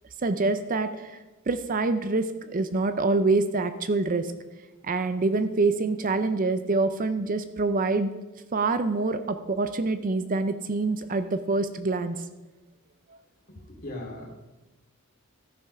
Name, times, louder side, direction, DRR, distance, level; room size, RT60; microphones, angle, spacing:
voice 1, 0.2-1.2 1.5-4.3 4.8-8.1 8.5-12.2, right 3 dB, 40° right, 10 dB, 0.6 m, -26 dB
voice 2, 13.5-14.3, left 1 dB, 45° left, -1 dB, 2.8 m, -38 dB
14.0 x 5.9 x 5.6 m, 1.1 s
head